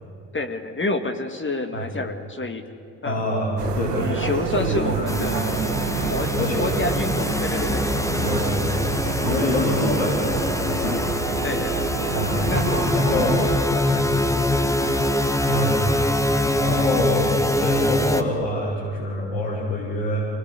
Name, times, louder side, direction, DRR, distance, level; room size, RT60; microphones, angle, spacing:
voice 1, 0.3-2.7 3.0-3.3 4.0-5.7 6.1-6.3 6.6-8.0 10.7-11.9 12.5-14.4 14.8-14.9, left 2 dB, 25° left, 7 dB, 2.0 m, -29 dB
voice 2, 3.0-4.3 4.5-5.1 6.3-6.8 8.2-8.8 9.2-11.1 12.1-12.5 12.9-13.4 13.8-14.1 15.5-15.9 16.6-20.3, left 1 dB, 75° left, -6 dB, 4.4 m, -26 dB
sound 1, 3.6-13.6, right 8 dB, 85° right, 1.3 m, -29 dB
sound 2, 5.1-18.2, left 1 dB, 5° left, 1.4 m, -24 dB
24.5 x 19.0 x 8.3 m, 2.8 s
hypercardioid pair, 55°, 46 cm